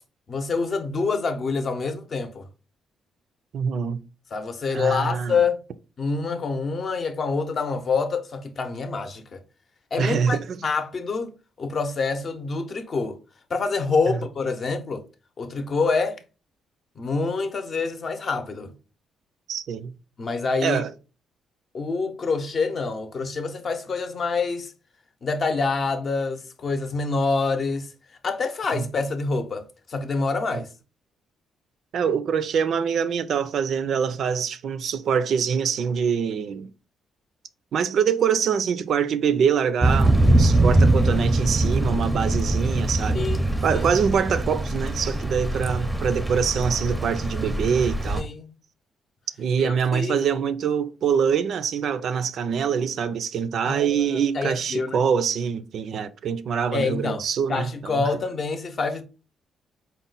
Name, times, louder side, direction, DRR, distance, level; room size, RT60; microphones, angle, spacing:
voice 1, 0.3-2.5 4.3-5.6 6.0-9.4 9.9-11.3 11.6-13.2 13.5-15.0 15.4-16.2 17.0-18.7 20.2-20.8 21.7-24.7 25.2-27.9 28.2-30.7 43.1-43.8 48.2-48.5 49.6-50.3 53.7-55.0 56.7-57.2 57.5-59.0, left 4 dB, 45° left, 0.6 m, -26 dB
voice 2, 3.5-4.0 4.7-5.4 10.0-10.6 14.1-14.2 19.5-20.0 20.6-20.9 28.7-28.9 30.5-30.6 31.9-36.7 37.7-43.3 43.6-48.2 49.4-58.1, right 7 dB, 65° right, 0.4 m, -24 dB
Thunder / Rain, 39.8-48.2, right 1 dB, 5° right, 0.5 m, -22 dB
4.2 x 2.1 x 3.8 m
cardioid pair, 90°, 0 cm